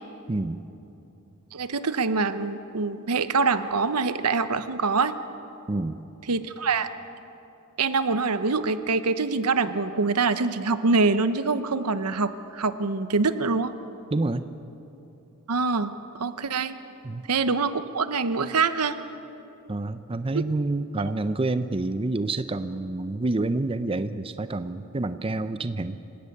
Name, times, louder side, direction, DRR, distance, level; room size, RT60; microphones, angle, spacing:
voice 1, 0.3-0.6 5.7-6.0 14.1-14.4 17.0-17.2 19.7-26.0, right 2 dB, 25° right, 11 dB, 0.5 m, -28 dB
voice 2, 1.5-5.1 6.3-6.9 7.8-13.7 15.5-15.9 16.2-16.7 17.3-19.0, right 4 dB, 85° right, 12 dB, 0.9 m, -24 dB
27.0 x 17.0 x 6.7 m, 2.9 s
head